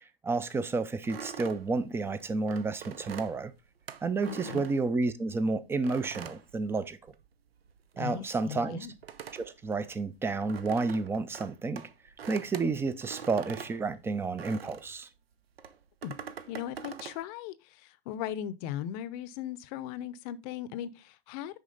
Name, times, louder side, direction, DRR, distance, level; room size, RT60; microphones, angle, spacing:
voice 1, 0.2-3.5 4.0-7.0 8.0-8.8 9.3-11.8 12.3-15.1, right 3 dB, 10° right, 0.4 m, -31 dB
sound 1, 1.0-5.3 5.8-7.3 7.6-15.0 15.6-17.2, right 7 dB, 90° right, 0.8 m, -44 dB
voice 2, 4.3-4.6 8.0-8.9 16.0-16.2 16.5-17.5 17.8-21.6, left 10 dB, 40° left, 0.6 m, -38 dB
6.5 x 4.9 x 3.9 m
hypercardioid pair, 120°, 29 cm